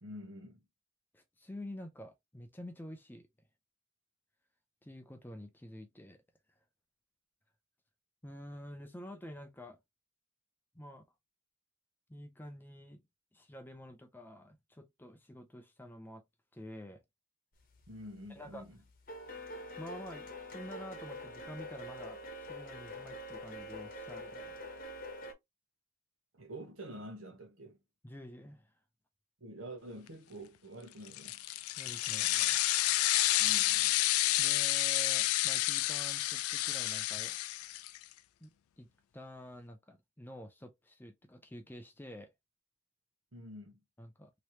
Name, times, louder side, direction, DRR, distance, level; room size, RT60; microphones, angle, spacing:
voice 1, 0.0-0.6 17.9-18.7 26.3-27.8 29.4-31.4 33.4-34.0 43.3-43.7, equal, 65° right, 1.1 m, -47 dB
voice 2, 1.1-3.3 4.8-6.2 8.2-9.8 10.7-11.1 12.1-13.0 13.3-16.2 16.5-17.0 18.3-18.7 19.8-24.7 28.0-28.7 31.8-32.6 34.4-37.4 38.4-38.9 39.1-42.3 44.0-44.3, equal, 10° left, 0.4 m, -48 dB
sound 1, 17.7-18.2 18.4-25.3, left 1 dB, 40° left, 0.9 m, -45 dB
sound 2, 31.1-38.0, left 16 dB, 85° left, 0.3 m, -30 dB
3.2 x 2.9 x 2.7 m
head